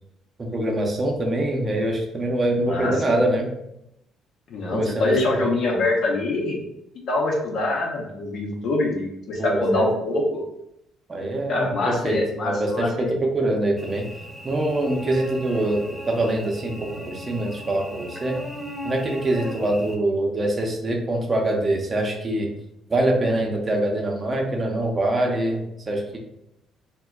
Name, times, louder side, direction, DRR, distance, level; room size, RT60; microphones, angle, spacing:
voice 1, 0.4-3.5 4.7-5.6 9.4-9.9 11.1-14.0 14.4-18.4 18.8-22.5 22.9-26.2, right 1 dB, 35° right, 2 dB, 0.6 m, -24 dB
voice 2, 4.5-6.6 7.1-10.4 11.5-13.2, left 2 dB, 65° left, -1 dB, 0.6 m, -24 dB
Cricket / Buzz, 13.8-20.0, equal, ahead, 0.8 m, -37 dB
2.1 x 2.1 x 3.5 m, 0.82 s
hypercardioid pair, 55°, 0 cm